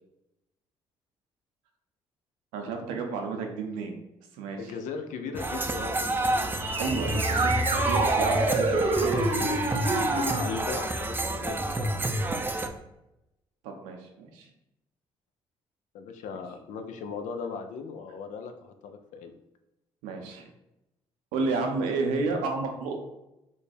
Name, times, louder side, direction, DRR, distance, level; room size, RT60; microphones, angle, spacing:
voice 1, 2.5-3.9 4.4-4.7 6.8-9.5 13.6-14.5 20.0-20.5 21.3-23.0, right 4 dB, 80° right, 3 dB, 0.6 m, -31 dB
voice 2, 4.6-6.5 10.1-12.0 15.9-19.3 21.3-21.7, left 5 dB, 70° left, 7 dB, 0.5 m, -38 dB
sound 1, 5.3-12.7, right 1 dB, 15° right, 0.4 m, -29 dB
sound 2, 6.6-10.4, right 2 dB, 45° right, 0.7 m, -27 dB
3.1 x 2.2 x 4.2 m, 0.91 s
hypercardioid pair, 50°, 13 cm